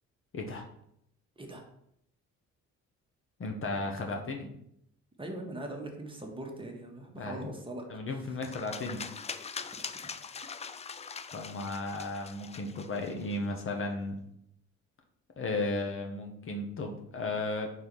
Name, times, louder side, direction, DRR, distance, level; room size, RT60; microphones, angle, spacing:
voice 1, 0.3-0.6 3.4-4.5 7.2-7.5 7.9-9.0 11.3-14.1 15.4-17.7, left 2 dB, 45° left, 2 dB, 1.1 m, -34 dB
voice 2, 5.2-8.4 9.6-9.9, right 1 dB, 15° right, 1 dB, 1.3 m, -41 dB
sound 1, 8.4-13.6, left 5 dB, 20° left, 0.3 m, -42 dB
4.5 x 4.1 x 5.3 m, 0.74 s
cardioid pair, 90°, 30 cm